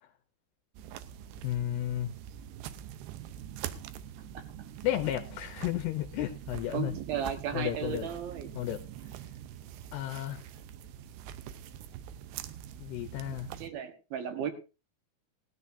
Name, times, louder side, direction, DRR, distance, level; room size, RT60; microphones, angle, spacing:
sound 1, 0.8-13.7, right 10 dB, 85° right, 2.9 m, -44 dB
voice 1, 1.4-2.1 4.8-6.9 7.5-8.1 8.6-8.8 9.9-10.5 12.8-13.5, left 13 dB, 80° left, 5 dB, 2.9 m, -33 dB
voice 2, 6.7-8.5 13.6-14.5, right 8 dB, 70° right, 5 dB, 3.2 m, -35 dB
19.5 x 13.0 x 2.7 m, 0.31 s
omnidirectional pair, 4.6 m